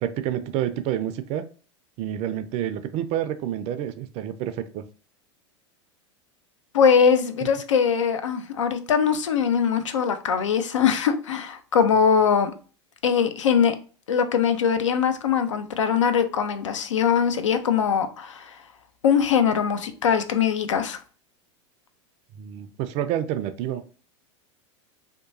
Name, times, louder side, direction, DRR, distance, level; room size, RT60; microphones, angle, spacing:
voice 1, 0.0-1.4 2.0-4.9 22.4-23.8, right 11 dB, 45° right, 0.4 m, -28 dB
voice 2, 6.7-12.5 13.0-13.8 14.1-18.6 19.0-21.0, left 7 dB, 80° left, 0.4 m, -21 dB
2.9 x 2.2 x 2.6 m
hypercardioid pair, 90°, 16 cm